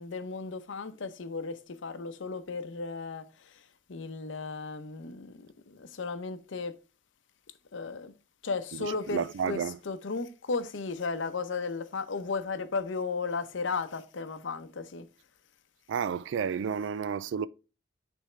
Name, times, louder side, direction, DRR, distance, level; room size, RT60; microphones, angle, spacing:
voice 1, 0.0-6.7 7.7-8.1 8.4-15.1, left 4 dB, 80° left, 0.7 m, -35 dB
voice 2, 8.8-9.8 15.9-17.5, right 7 dB, 75° right, 0.3 m, -31 dB
9.5 x 3.5 x 3.2 m
head